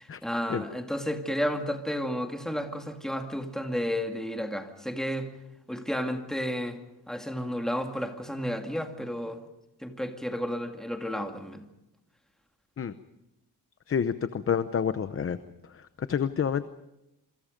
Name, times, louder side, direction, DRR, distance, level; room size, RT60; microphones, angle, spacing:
voice 1, 0.0-5.3 5.7-6.8 7.1-9.4 9.8-11.6, equal, ahead, 2.1 m, -32 dB
voice 2, 13.9-15.4 15.7-16.6, left 7 dB, 35° left, 0.8 m, -28 dB
27.5 x 25.0 x 5.2 m
wide cardioid pair, 165°, 40 cm